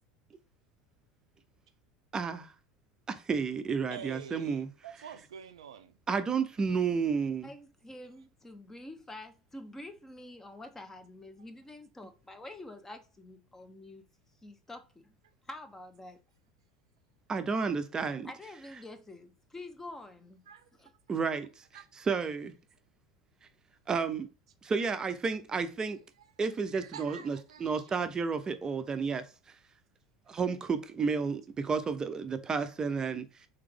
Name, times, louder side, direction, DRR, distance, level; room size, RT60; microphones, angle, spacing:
voice 1, 3.1-4.7 6.1-7.5 17.3-18.3 21.1-21.5 22.0-22.5 23.9-24.3 24.6-26.0 26.4-29.2 30.3-33.3, right 5 dB, 25° right, 0.6 m, -31 dB
voice 2, 3.9-6.0 20.5-20.7 21.7-21.8 26.8-27.9 28.8-29.0, right 8 dB, 70° right, 0.4 m, -47 dB
voice 3, 7.4-14.0 14.4-15.1 15.4-16.2 18.2-20.4 20.7-20.9, left 2 dB, 10° left, 0.8 m, -47 dB
3.6 x 3.3 x 3.5 m
figure-of-eight pair, 75°, 3 cm